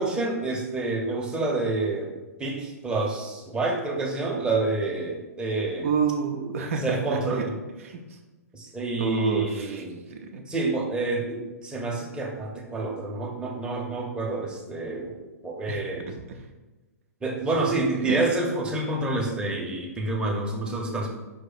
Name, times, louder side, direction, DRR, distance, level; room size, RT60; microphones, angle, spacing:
voice 1, 0.0-2.1 2.4-5.9 6.8-7.5 8.5-10.0 10.5-15.2 15.4-16.1 17.2-21.1, right 2 dB, 10° right, 0 dB, 0.7 m, -28 dB
voice 2, 5.8-7.5 7.8-8.0 9.0-9.8 10.1-10.4 15.7-16.2 18.0-18.2, right 5 dB, 55° right, 3 dB, 0.5 m, -29 dB
5.0 x 2.6 x 4.0 m, 1.1 s
figure-of-eight pair, 110°, 9 cm